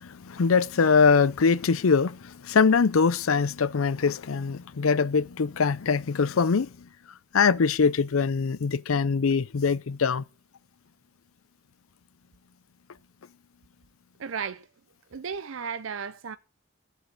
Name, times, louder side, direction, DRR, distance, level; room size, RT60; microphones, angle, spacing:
voice 1, 0.0-6.7 7.3-10.2, left 5 dB, 85° left, 0.6 m, -23 dB
voice 2, 14.2-14.7 15.1-16.4, right 6 dB, 70° right, 0.6 m, -34 dB
14.0 x 8.2 x 6.7 m
head